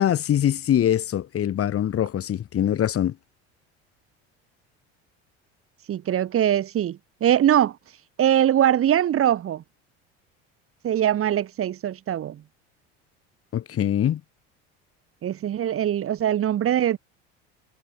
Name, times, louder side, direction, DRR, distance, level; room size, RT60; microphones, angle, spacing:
voice 1, 0.0-3.2 13.5-14.2, left 10 dB, 45° left, 4.7 m, -23 dB
voice 2, 5.9-7.8 8.2-9.6 10.8-12.4 15.2-17.0, right 10 dB, 45° right, 2.3 m, -22 dB
supercardioid pair, 95°, 31 cm